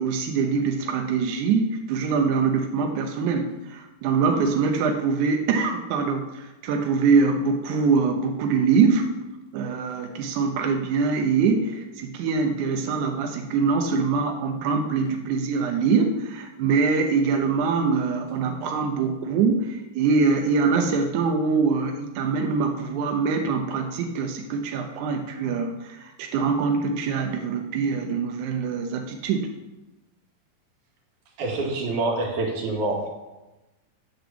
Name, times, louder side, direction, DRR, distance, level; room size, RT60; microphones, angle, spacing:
voice 1, 0.0-9.1 9.5-29.5, right 5 dB, 75° right, 3 dB, 1.8 m, -24 dB
voice 2, 31.4-33.1, right 2 dB, 60° right, 1 dB, 2.9 m, -26 dB
9.8 x 6.6 x 7.1 m, 1.1 s
omnidirectional pair, 4.4 m